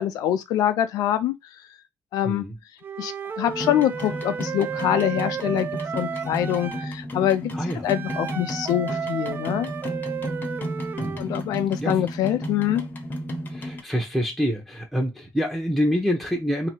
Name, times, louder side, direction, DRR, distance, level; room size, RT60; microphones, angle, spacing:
voice 1, 0.0-1.3 2.1-2.5 3.0-5.7 5.9-7.5 7.8-9.7 11.2-12.8, left 11 dB, 85° left, 0.5 m, -24 dB
voice 2, 2.2-2.6 7.5-7.9 11.0-11.3 11.8-12.0 13.5-16.7, equal, ahead, 0.9 m, -26 dB
Wind instrument woodwind instrument, 2.8-6.9 7.8-11.2, right 7 dB, 35° right, 0.3 m, -33 dB
sound 1, 3.5-13.8, equal, 30° left, 1.0 m, -33 dB
2.9 x 2.9 x 4.4 m
cardioid pair, 115°, 6 cm